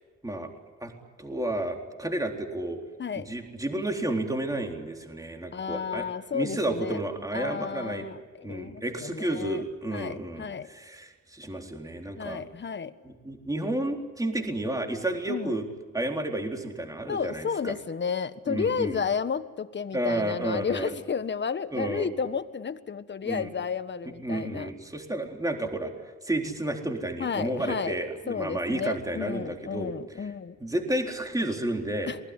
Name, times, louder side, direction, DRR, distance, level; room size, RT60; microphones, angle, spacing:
voice 1, 1.2-2.8 3.2-6.1 6.3-8.1 8.4-12.4 13.0-15.7 15.9-17.7 18.5-19.0 19.9-20.9 21.7-22.1 23.2-23.5 24.2-25.9 26.2-29.9 30.2-30.3 30.6-32.1, right 1 dB, 10° right, 2 dB, 4.0 m, -31 dB
voice 2, 5.5-7.0 7.3-9.6 9.9-10.7 12.2-12.9 15.3-15.6 17.1-24.7 27.2-28.0 28.3-30.6 32.1-32.2, left 6 dB, 35° left, 12 dB, 1.5 m, -32 dB
27.5 x 20.5 x 10.0 m, 1.3 s
cardioid pair, 90°, 30 cm